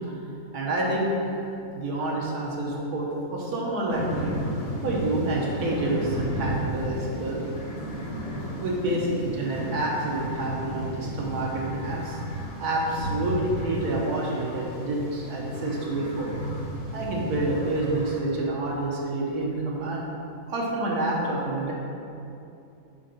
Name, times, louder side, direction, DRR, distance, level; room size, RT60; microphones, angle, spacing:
voice 1, 0.5-1.1 1.7-4.3 4.8-7.4 8.6-12.2 12.6-16.3 16.9-20.0 20.5-21.7, right 2 dB, 85° right, -3 dB, 1.6 m, -28 dB
sound 1, 3.9-18.2, equal, 45° left, 1.3 m, -34 dB
5.7 x 3.8 x 5.3 m, 2.8 s
omnidirectional pair, 1.6 m